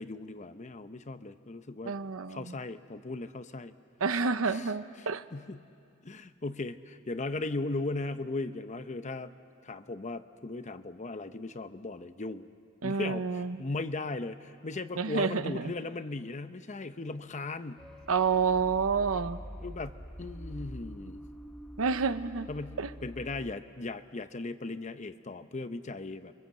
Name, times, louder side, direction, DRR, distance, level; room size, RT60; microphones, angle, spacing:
voice 1, 0.0-1.9 2.3-3.8 4.5-4.7 5.0-5.6 6.0-9.3 9.6-12.5 12.8-17.8 19.6-21.2 22.5-26.3, left 2 dB, 35° left, 11 dB, 0.8 m, -37 dB
voice 2, 1.9-2.5 4.0-5.2 12.8-13.6 15.0-15.7 18.1-19.4 21.8-22.5 22.8-22.9, right 5 dB, 70° right, 12 dB, 0.8 m, -29 dB
sound 1, 17.8-23.5, equal, 5° left, 0.9 m, -45 dB
29.5 x 24.5 x 7.7 m, 2.4 s
head